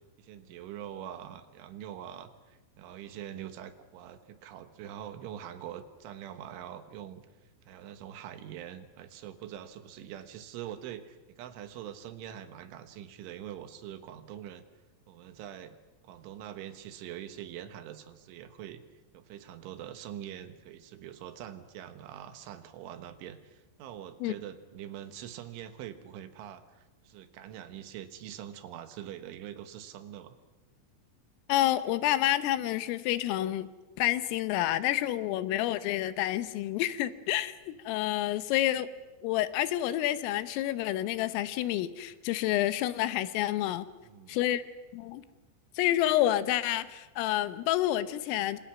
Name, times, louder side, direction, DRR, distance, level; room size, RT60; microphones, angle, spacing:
voice 1, 0.2-7.3 7.7-14.6 15.1-15.8 16.0-18.8 19.1-30.4 44.0-44.4, right 10 dB, 75° right, 10 dB, 3.7 m, -44 dB
voice 2, 31.5-33.7 34.0-37.6 37.9-38.9 39.2-43.9 44.3-44.6 44.9-45.2 45.8-48.6, left 14 dB, 85° left, 13 dB, 3.6 m, -28 dB
28.0 x 26.0 x 6.1 m, 1.1 s
omnidirectional pair, 5.7 m